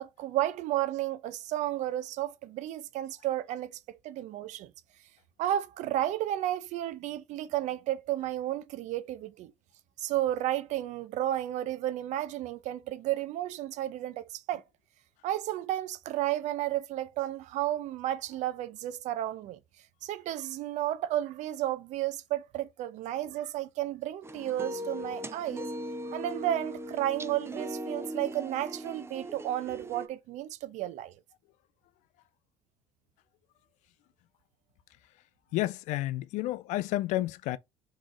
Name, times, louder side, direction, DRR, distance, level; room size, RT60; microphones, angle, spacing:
voice 1, 0.0-4.7 5.4-9.5 10.0-14.6 15.2-19.6 20.0-25.7 26.0-31.1, right 13 dB, 65° right, 0.6 m, -32 dB
sound 1, 24.2-30.1, right 1 dB, 20° right, 0.6 m, -39 dB
voice 2, 35.5-37.6, left 16 dB, 65° left, 0.4 m, -30 dB
3.7 x 3.2 x 3.7 m
hypercardioid pair, 60°, 13 cm